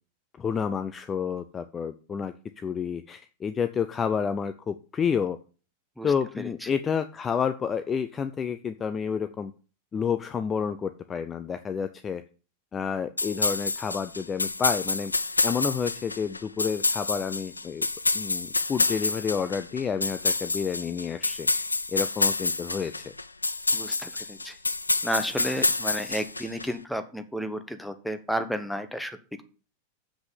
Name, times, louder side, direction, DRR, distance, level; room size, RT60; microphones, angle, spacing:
voice 1, 0.4-5.4 6.0-9.5 9.9-12.2 12.7-15.1 15.4-17.9 18.1-21.5 21.9-23.1, left 6 dB, 20° left, 10 dB, 0.5 m, -29 dB
voice 2, 6.0-6.7 23.7-24.6 25.0-29.4, equal, ahead, 9 dB, 1.1 m, -32 dB
sound 1, 13.2-26.7, left 3 dB, 80° left, 0.5 m, -28 dB
7.5 x 6.0 x 6.8 m, 0.37 s
figure-of-eight pair, 90°, 0 cm